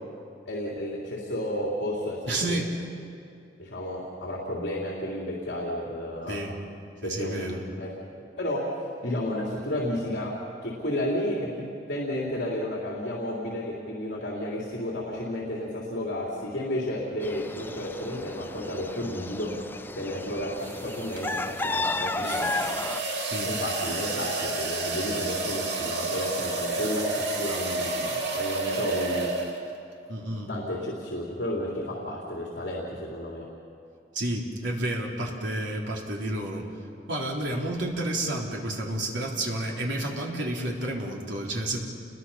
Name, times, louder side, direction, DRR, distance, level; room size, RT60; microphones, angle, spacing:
voice 1, 0.4-2.6 3.6-6.4 7.0-7.9 8.4-8.6 9.0-10.3 10.6-11.5 11.9-19.5 19.9-22.6 23.4-29.3 30.5-33.5, left 1 dB, 65° left, -3 dB, 3.4 m, -32 dB
voice 2, 2.3-2.8 6.3-6.6 7.0-7.6 23.3-23.5 30.1-30.5 34.1-36.7 37.1-41.8, right 1 dB, 90° right, -1 dB, 3.6 m, -30 dB
sound 1, 17.2-23.0, left 2 dB, 10° left, 0.5 m, -33 dB
sound 2, 18.7-19.0 20.6-29.8, right 2 dB, 70° right, 2.7 m, -31 dB
29.5 x 22.0 x 5.7 m, 2.6 s
head